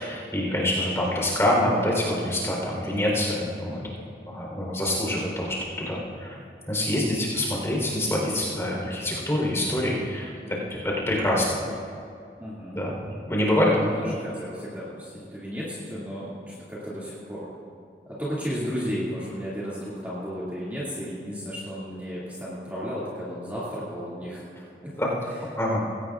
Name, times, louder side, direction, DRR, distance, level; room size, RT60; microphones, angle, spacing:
voice 1, 0.0-3.8 4.3-6.4 6.7-10.3 10.8-11.6 12.7-13.9 25.0-25.1 25.6-25.8, left 1 dB, 15° left, -3 dB, 3.7 m, -25 dB
voice 2, 12.4-12.8 14.0-17.5 18.1-24.4 24.8-24.9, equal, 10° right, -9 dB, 2.3 m, -34 dB
20.0 x 17.5 x 2.5 m, 2.5 s
head